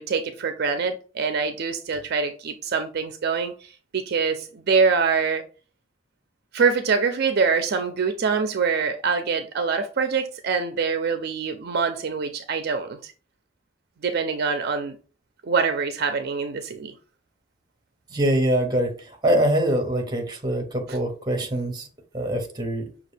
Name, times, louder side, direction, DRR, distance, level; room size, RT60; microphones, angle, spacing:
voice 1, 0.0-3.5 3.9-5.4 6.5-13.1 14.0-15.0 15.4-16.9, right 5 dB, 55° right, 0.4 m, -24 dB
voice 2, 18.1-18.9 19.2-21.9 22.1-22.9, right 1 dB, 20° right, 0.8 m, -23 dB
5.8 x 2.4 x 3.3 m
head